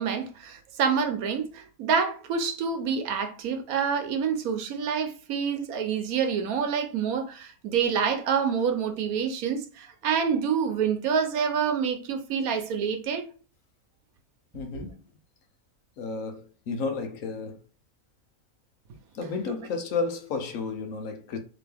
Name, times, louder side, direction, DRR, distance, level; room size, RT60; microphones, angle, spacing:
voice 1, 0.0-13.3 14.7-14.8 19.2-19.3, right 6 dB, 85° right, 1.2 m, -27 dB
voice 2, 14.5-15.0 16.0-17.6 19.1-21.4, left 4 dB, 70° left, 1.2 m, -32 dB
3.8 x 2.9 x 3.4 m
omnidirectional pair, 1.5 m